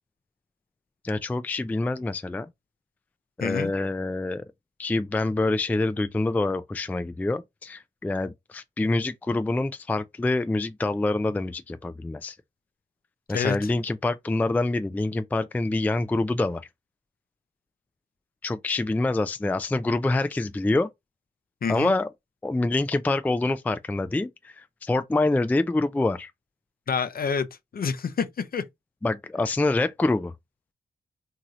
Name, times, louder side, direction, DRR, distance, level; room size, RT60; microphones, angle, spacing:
voice 1, 1.0-2.5 3.4-4.4 4.8-12.4 13.3-16.6 18.4-20.9 21.7-22.1 22.4-26.3 29.0-30.3, left 2 dB, 10° left, 0.3 m, -26 dB
voice 2, 3.4-3.7 13.3-13.7 21.6-21.9 26.9-27.5 27.7-28.6, left 6 dB, 50° left, 0.6 m, -27 dB
2.9 x 2.7 x 2.5 m
supercardioid pair, 50°, 19 cm